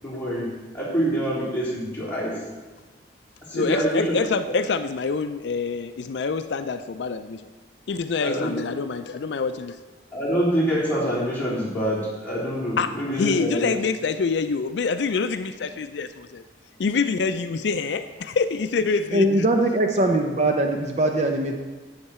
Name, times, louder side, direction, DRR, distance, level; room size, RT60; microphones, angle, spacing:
voice 1, 0.0-0.5 0.7-2.3 3.5-4.2 8.2-8.5 10.1-13.7 20.0-20.1, equal, 10° left, -8 dB, 3.6 m, -25 dB
voice 2, 3.5-7.4 7.9-9.8 12.8-16.4 16.8-19.5, left 4 dB, 70° left, 10 dB, 0.4 m, -26 dB
voice 3, 19.1-21.6, right 1 dB, 40° right, 4 dB, 0.7 m, -21 dB
11.5 x 8.0 x 4.3 m, 1.3 s
head